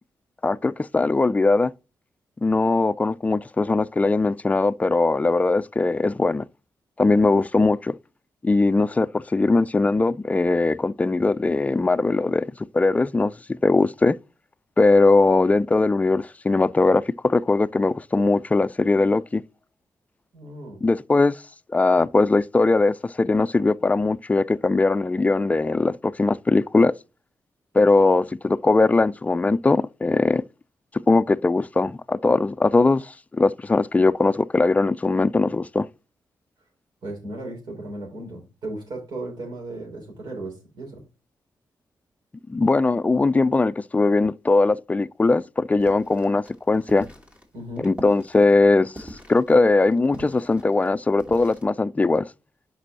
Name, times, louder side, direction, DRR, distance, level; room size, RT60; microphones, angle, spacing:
voice 1, 0.4-1.7 2.4-6.4 7.0-8.0 8.4-12.5 12.7-13.3 13.6-14.2 14.8-19.4 20.8-21.4 21.7-26.9 27.7-30.4 31.1-35.9 42.5-47.1 47.8-48.9 49.3-52.3, left 3 dB, 20° left, 0.3 m, -20 dB
voice 2, 20.3-20.8 37.0-41.0 47.5-47.9, right 2 dB, 80° right, 3.8 m, -36 dB
sound 1, 45.8-51.6, equal, 20° right, 2.1 m, -43 dB
5.4 x 5.0 x 6.2 m
cardioid pair, 90°, 7 cm